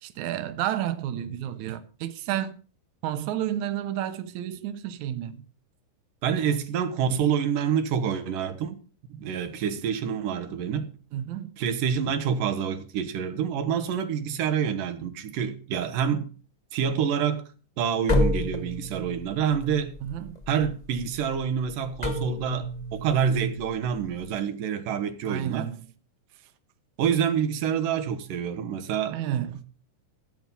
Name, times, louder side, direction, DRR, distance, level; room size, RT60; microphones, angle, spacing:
voice 1, 0.0-2.6 3.0-5.4 11.1-11.5 20.0-20.4 25.3-25.8 29.1-29.6, right 11 dB, 70° right, 2.3 m, -31 dB
voice 2, 6.2-8.8 9.1-10.9 11.6-16.3 16.7-17.4 17.8-20.0 20.5-25.7 27.0-29.2, right 8 dB, 90° right, 2.9 m, -27 dB
sound 1, 18.1-24.3, left 1 dB, 20° left, 1.0 m, -30 dB
16.0 x 8.6 x 5.3 m
omnidirectional pair, 3.7 m